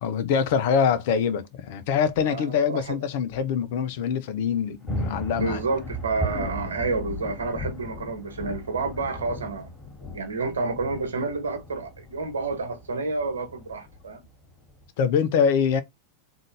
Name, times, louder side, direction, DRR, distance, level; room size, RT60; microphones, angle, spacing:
voice 1, 0.0-5.6 15.0-15.8, left 7 dB, 50° left, 0.7 m, -24 dB
sound 1, 1.9-2.2 2.8-2.9 3.3-3.4 4.5-14.9, equal, 15° left, 2.5 m, -37 dB
voice 2, 2.2-2.9 5.4-9.7 10.1-14.2, right 3 dB, 70° right, 1.2 m, -29 dB
3.8 x 2.6 x 3.3 m
figure-of-eight pair, 90°, 0 cm